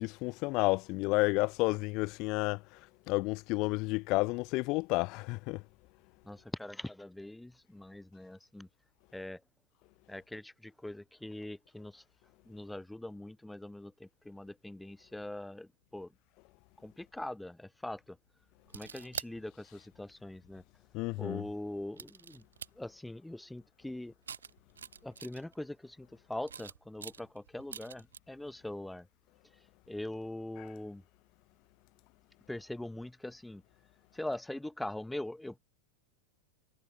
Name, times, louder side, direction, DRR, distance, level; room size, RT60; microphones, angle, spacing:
voice 1, 0.0-2.8 3.1-5.6 20.9-21.4 30.6-30.7, left 25 dB, 40° left, 1.0 m, -31 dB
voice 2, 6.2-8.7 9.1-9.4 10.1-12.0 12.5-16.1 16.8-18.2 18.7-20.6 21.2-22.4 22.8-24.1 25.0-29.1 29.9-31.0 32.5-33.6 34.1-35.6, left 1 dB, 5° left, 2.5 m, -42 dB
sound 1, 18.7-19.3 20.4-20.5 21.9-22.7 24.3-25.7 26.4-28.2, right 7 dB, 70° right, 0.9 m, -45 dB
figure-of-eight pair, 90°, 0 cm